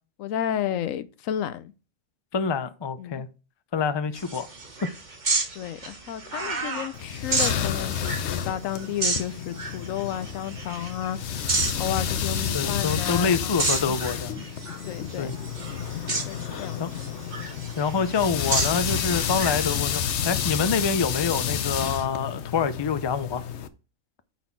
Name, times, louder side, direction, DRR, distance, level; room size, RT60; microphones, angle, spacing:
voice 1, 0.2-1.7 3.0-3.2 5.6-11.4 11.8-13.4 13.9-14.2 14.9-15.3 16.3-16.9, left 10 dB, 90° left, 1.0 m, -32 dB
voice 2, 2.3-3.3 3.7-4.5 12.5-14.5 15.2-15.3 16.8-16.9 17.8-23.4, left 5 dB, 35° left, 0.4 m, -26 dB
sound 1, 4.1-20.7, right 3 dB, 35° right, 1.3 m, -32 dB
sound 2, 6.9-23.7, left 8 dB, 65° left, 0.9 m, -30 dB
9.3 x 4.2 x 4.5 m
omnidirectional pair, 1.3 m